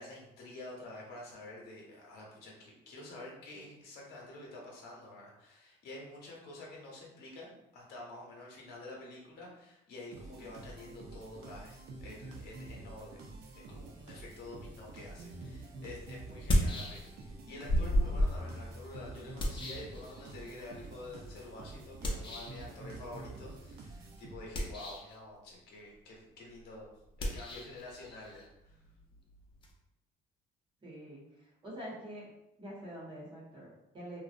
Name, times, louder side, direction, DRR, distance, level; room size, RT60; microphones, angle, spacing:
voice 1, 0.0-13.2 13.7-26.9 27.2-28.8, left 2 dB, 75° left, -2 dB, 0.7 m, -48 dB
sound 1, 10.1-24.7, right 2 dB, 65° right, 0.5 m, -48 dB
sound 2, 15.3-15.4 16.3-17.3 17.7-20.5 22.0-22.7 24.4-25.2 27.1-29.7, equal, 30° left, 0.4 m, -33 dB
voice 2, 30.8-32.3 32.6-34.2, equal, 30° right, -5 dB, 0.8 m, -46 dB
2.5 x 2.0 x 2.5 m, 0.89 s
cardioid pair, 110°, 17 cm